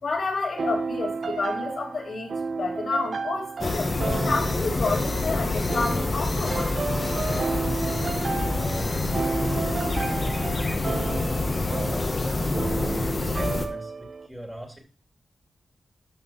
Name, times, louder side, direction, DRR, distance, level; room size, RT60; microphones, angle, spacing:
voice 1, 0.0-6.7, left 3 dB, 70° left, -2 dB, 3.7 m, -30 dB
sound 1, 0.6-14.3, right 4 dB, 60° right, 1.0 m, -32 dB
sound 2, 3.6-13.7, left 2 dB, 35° left, 1.6 m, -27 dB
voice 2, 8.5-9.9 10.2-11.4 11.7-14.8, right 1 dB, 10° right, 2 dB, 2.6 m, -41 dB
13.0 x 5.1 x 5.7 m, 0.37 s
wide cardioid pair, 125°, 0 cm